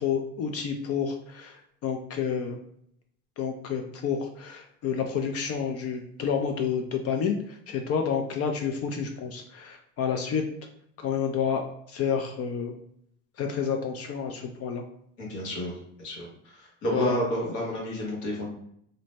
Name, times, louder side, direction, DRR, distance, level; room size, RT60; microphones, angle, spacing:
voice 1, 0.0-2.6 3.4-10.4 11.0-11.6 11.9-12.7 13.4-14.8 16.9-17.2, left 7 dB, 50° left, 4 dB, 0.4 m, -29 dB
voice 2, 15.2-16.3 16.6-18.5, equal, 70° left, -2 dB, 1.2 m, -30 dB
2.5 x 2.0 x 3.2 m, 0.69 s
supercardioid pair, 95°, 31 cm